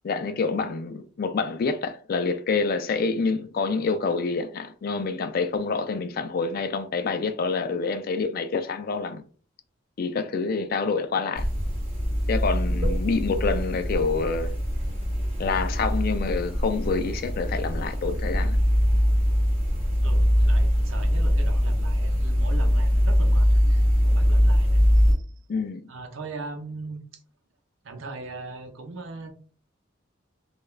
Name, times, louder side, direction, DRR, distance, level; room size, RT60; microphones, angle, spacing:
voice 1, 0.0-9.2 10.0-11.5 12.3-14.6 15.4-18.6 25.5-25.8, left 4 dB, 50° left, 0.3 m, -27 dB
sound 1, 11.4-25.1, equal, 30° right, 1.4 m, -22 dB
voice 2, 20.0-24.8 25.1-25.2 25.9-27.0 27.8-29.3, right 3 dB, 80° right, 0.6 m, -39 dB
2.3 x 2.3 x 3.1 m
head